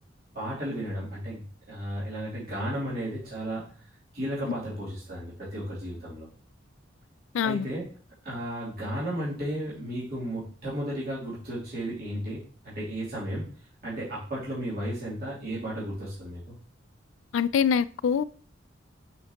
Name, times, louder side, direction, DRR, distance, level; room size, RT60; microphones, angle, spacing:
voice 1, 0.3-3.7 4.1-6.3 7.4-7.8 8.2-13.4 13.8-16.5, equal, 55° right, 3.1 m, -34 dB
voice 2, 7.3-7.7 17.3-18.2, left 7 dB, 80° left, 0.3 m, -24 dB
6.0 x 5.6 x 2.9 m
head